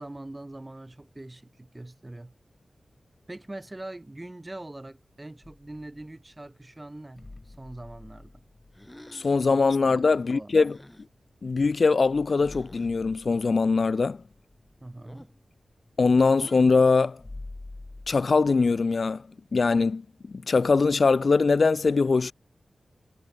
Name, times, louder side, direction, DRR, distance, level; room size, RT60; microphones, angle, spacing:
voice 1, 0.0-2.3 3.3-8.4 9.2-10.5 14.8-15.3, right 1 dB, 25° right, 4.1 m, -43 dB
sound 1, 5.4-6.3 7.2-11.1 11.6-11.7 12.0-18.9, left 2 dB, 30° left, 2.4 m, -48 dB
sound 2, 8.7-9.5 10.6-11.1 12.4-12.9 15.0-15.4 16.3-16.8, left 1 dB, 10° left, 2.2 m, -50 dB
voice 2, 9.1-10.8 11.4-14.2 16.0-17.2 18.1-19.2 19.5-20.0 20.5-22.3, left 4 dB, 60° left, 0.4 m, -22 dB
wide cardioid pair, 65°, 0 cm